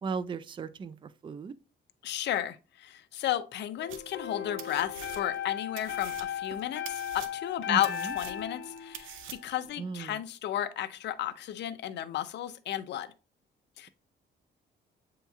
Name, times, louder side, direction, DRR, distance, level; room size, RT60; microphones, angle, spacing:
voice 1, 0.0-1.5 7.7-8.1 9.8-10.2, right 5 dB, 25° right, 0.3 m, -36 dB
voice 2, 2.0-13.1 13.8-13.9, left 12 dB, 60° left, 0.5 m, -33 dB
sound 1, 3.8-9.7, left 9 dB, 80° left, 0.9 m, -38 dB
sound 2, 3.9-4.3 4.6-5.5 5.8-9.7, right 9 dB, 85° right, 0.5 m, -46 dB
7.7 x 2.9 x 2.3 m
cardioid pair, 90°, 20 cm